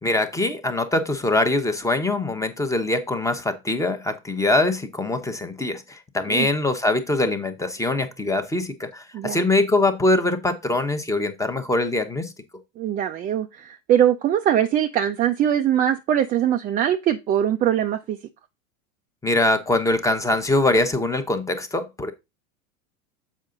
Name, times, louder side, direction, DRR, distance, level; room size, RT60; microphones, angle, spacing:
voice 1, 0.0-12.3 19.2-22.1, left 2 dB, 5° left, 0.8 m, -23 dB
voice 2, 12.8-18.2, right 10 dB, 20° right, 0.3 m, -22 dB
7.3 x 4.9 x 3.8 m
hypercardioid pair, 105°, 42 cm